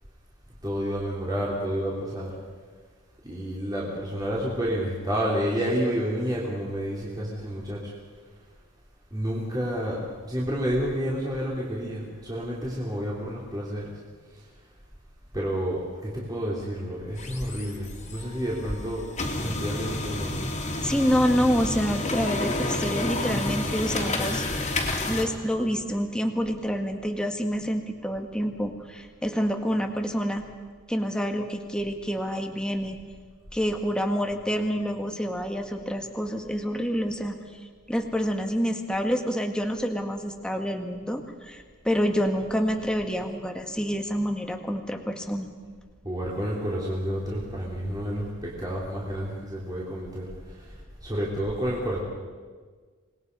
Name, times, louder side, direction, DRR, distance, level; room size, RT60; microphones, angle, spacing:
voice 1, 0.6-2.4 3.2-7.9 9.1-10.0 10.2-13.9 14.3-14.4 15.3-19.0 19.3-20.3 46.0-50.7 51.0-52.0, equal, 20° right, -5 dB, 3.5 m, -30 dB
sound 1, 17.1-25.2, left 2 dB, 35° left, 2.9 m, -30 dB
voice 2, 20.8-24.5 25.1-30.4 30.9-33.0 33.5-37.4 37.9-45.5, equal, 5° left, 4 dB, 1.7 m, -27 dB
26.5 x 20.5 x 5.5 m, 1.5 s
head